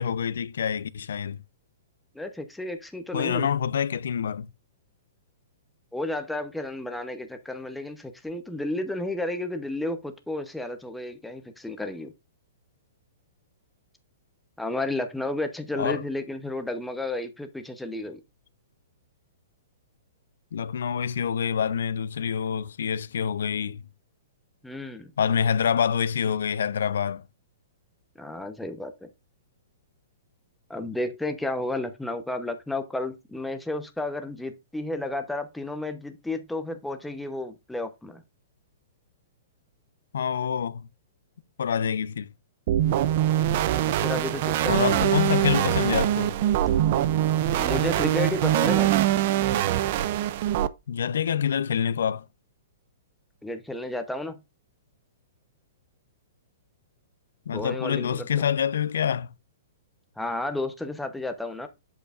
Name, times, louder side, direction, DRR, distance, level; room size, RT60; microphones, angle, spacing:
voice 1, 0.0-1.4 3.1-4.5 15.7-16.0 20.5-23.8 25.2-27.3 40.1-40.9 41.6-42.3 44.7-46.3 50.9-52.3 57.5-59.3, left 8 dB, 80° left, 0.6 m, -26 dB
voice 2, 2.1-3.5 5.9-12.1 14.6-18.2 24.6-25.1 28.2-29.1 30.7-38.2 43.6-45.1 47.6-48.9 53.4-54.4 57.5-58.3 60.2-61.7, left 2 dB, ahead, 0.8 m, -32 dB
sound 1, 42.7-50.7, right 12 dB, 40° right, 0.4 m, -23 dB
8.1 x 6.4 x 2.5 m
hypercardioid pair, 165°, 0 cm